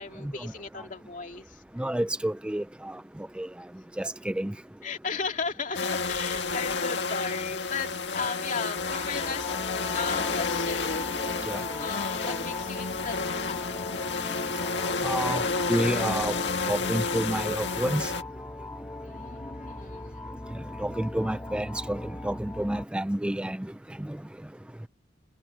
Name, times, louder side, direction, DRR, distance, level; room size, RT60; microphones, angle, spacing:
voice 1, 0.0-1.6 4.8-9.5 9.8-11.0 11.3-13.9 19.0-20.3, left 5 dB, 45° left, 2.7 m, -36 dB
voice 2, 1.8-3.0 3.4-3.5 4.0-4.5 11.5-11.6 15.0-15.4 15.7-16.3 16.7-18.1 20.8-23.6, right 1 dB, 5° right, 0.4 m, -29 dB
sound 1, 5.7-18.2, left 4 dB, 70° left, 2.0 m, -30 dB
sound 2, 8.7-22.9, left 2 dB, 15° left, 1.1 m, -39 dB
head